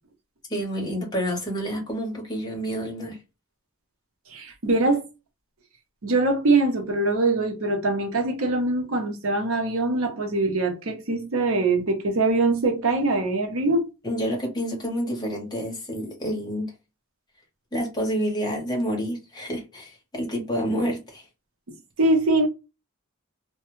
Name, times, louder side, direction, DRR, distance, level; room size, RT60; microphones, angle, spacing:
voice 1, 0.5-3.2 14.0-16.7 17.7-21.2, equal, 20° left, 0.9 m, -28 dB
voice 2, 4.3-5.1 6.0-13.9 21.7-22.5, right 2 dB, 70° right, 0.7 m, -23 dB
2.2 x 2.1 x 2.9 m
head